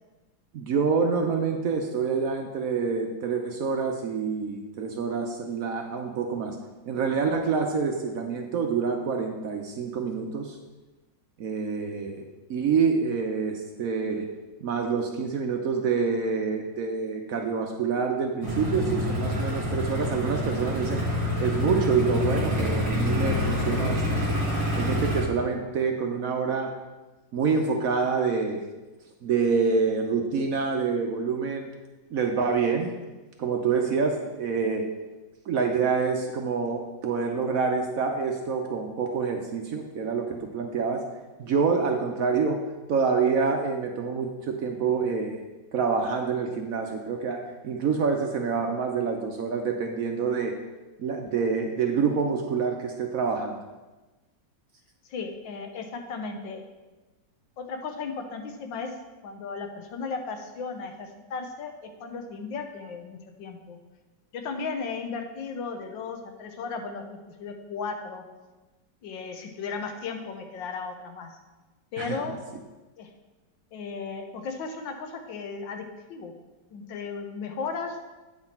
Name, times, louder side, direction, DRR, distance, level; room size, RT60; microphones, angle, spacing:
voice 1, 0.5-6.6 6.9-10.6 11.4-14.3 14.6-21.0 21.4-24.4 24.7-26.7 27.3-28.6 29.2-31.7 32.1-32.9 33.4-34.9 35.5-41.0 41.4-42.6 42.9-45.4 45.7-50.6 51.0-53.6 72.0-72.2, right 5 dB, 65° right, 3 dB, 0.9 m, -27 dB
sound 1, 18.4-25.2, left 1 dB, 25° right, 3.3 m, -27 dB
voice 2, 55.0-56.6 57.6-58.9 59.2-63.8 64.3-68.2 69.0-71.3 71.9-72.4 73.0-73.1 73.7-76.3 76.7-78.0, left 4 dB, 85° left, 5 dB, 1.6 m, -35 dB
8.8 x 5.9 x 4.3 m, 1.2 s
omnidirectional pair, 2.0 m